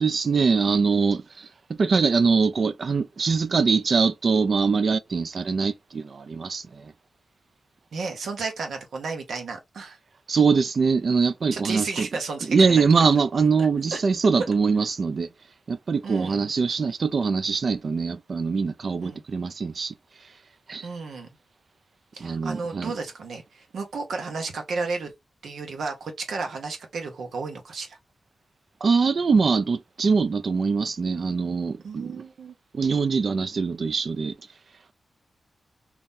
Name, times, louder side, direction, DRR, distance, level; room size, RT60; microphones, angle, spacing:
voice 1, 0.0-6.9 10.3-12.1 12.5-15.3 15.7-19.9 20.7-20.9 22.2-22.9 28.8-32.2 32.7-34.4, right 5 dB, 50° right, 0.3 m, -23 dB
voice 2, 7.9-10.0 11.5-12.8 13.9-14.0 16.0-16.4 19.0-19.2 20.8-21.3 22.1-25.1 25.4-28.0 31.8-32.5, right 4 dB, 85° right, 1.0 m, -33 dB
2.9 x 2.6 x 3.5 m
wide cardioid pair, 160°, 0 cm